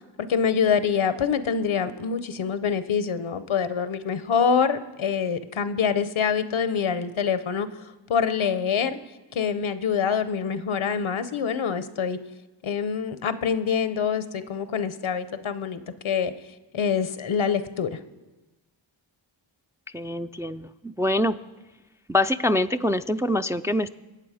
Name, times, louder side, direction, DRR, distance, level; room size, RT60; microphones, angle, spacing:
voice 1, 0.2-9.0 9.3-12.2 12.6-16.3 16.7-18.0, left 6 dB, 80° left, 12 dB, 0.8 m, -25 dB
voice 2, 19.9-21.4 22.1-23.9, left 1 dB, 5° right, 9 dB, 0.4 m, -25 dB
22.5 x 8.7 x 4.9 m, 1.1 s
cardioid pair, 45°, 48 cm